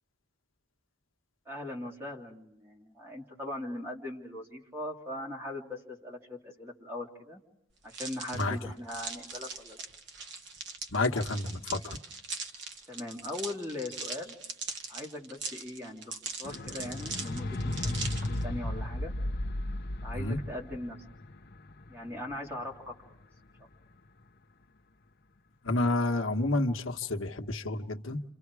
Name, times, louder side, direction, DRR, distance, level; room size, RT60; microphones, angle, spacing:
voice 1, 1.4-7.4 7.8-9.8 12.9-14.4 14.9-19.1 20.0-21.0 21.9-22.9, left 1 dB, 10° right, -1 dB, 3.0 m, -40 dB
sound 1, 7.9-18.4, right 4 dB, 55° right, 1.9 m, -41 dB
voice 2, 10.9-12.0 20.1-20.4 25.6-28.2, left 2 dB, 75° left, 4 dB, 1.4 m, -29 dB
sound 2, 16.4-22.9 23.7-23.8, left 1 dB, 50° left, 0.9 m, -35 dB
30.0 x 27.5 x 4.8 m, 0.79 s
head